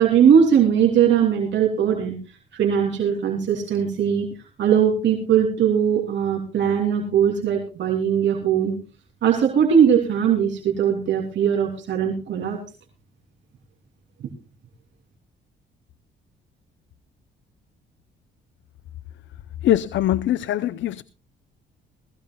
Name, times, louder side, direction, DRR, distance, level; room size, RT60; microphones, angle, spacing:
voice 1, 0.0-2.2 2.5-4.3 4.6-8.8 9.2-12.6, right 8 dB, 65° right, 3.0 m, -20 dB
voice 2, 19.6-21.0, left 12 dB, 70° left, 0.6 m, -22 dB
19.5 x 16.0 x 2.3 m
cardioid pair, 90°, 20 cm